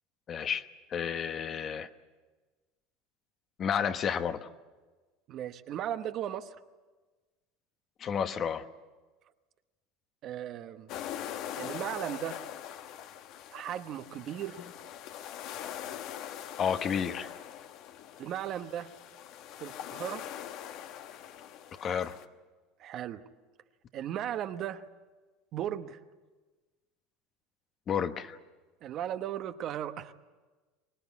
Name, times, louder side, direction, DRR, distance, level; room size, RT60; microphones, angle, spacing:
voice 1, 0.3-1.9 3.6-4.5 8.0-8.7 16.6-17.3 21.8-22.2 27.9-28.4, left 7 dB, 40° left, 9 dB, 1.1 m, -31 dB
voice 2, 5.3-6.6 10.2-10.9 11.6-12.4 13.5-14.6 18.2-18.9 19.6-20.3 22.8-23.2 23.9-24.8 25.5-26.0 28.8-30.1, right 11 dB, 50° right, 9 dB, 1.1 m, -36 dB
sound 1, 10.9-22.3, left 10 dB, 60° left, 1.2 m, -42 dB
24.5 x 19.5 x 8.4 m, 1.3 s
supercardioid pair, 105°, 0 cm